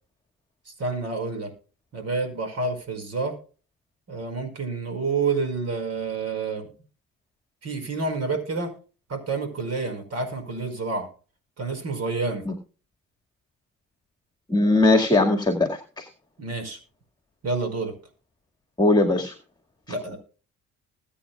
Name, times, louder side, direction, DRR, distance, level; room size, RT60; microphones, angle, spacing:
voice 1, 0.7-1.5 1.9-3.4 4.1-6.7 7.6-8.7 9.1-11.1 11.6-12.4 16.4-16.8 17.4-17.9 19.9-20.2, right 4 dB, 55° right, 7 dB, 5.3 m, -28 dB
voice 2, 14.5-16.1 18.8-19.3, left 2 dB, 15° left, 4 dB, 2.0 m, -20 dB
21.5 x 8.6 x 2.4 m, 0.37 s
cardioid pair, 90°, 30 cm